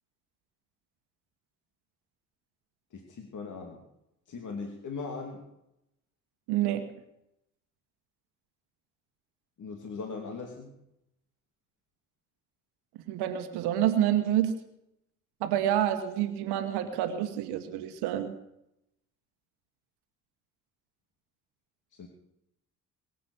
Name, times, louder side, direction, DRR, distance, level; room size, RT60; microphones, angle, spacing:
voice 1, 2.9-3.8 4.3-5.5 9.6-10.8 21.9-22.1, left 4 dB, 45° left, 2 dB, 2.6 m, -39 dB
voice 2, 6.5-6.8 13.1-14.6 15.4-18.3, right 11 dB, 60° right, 9 dB, 1.4 m, -28 dB
22.5 x 7.6 x 7.1 m, 0.84 s
figure-of-eight pair, 50°, 44 cm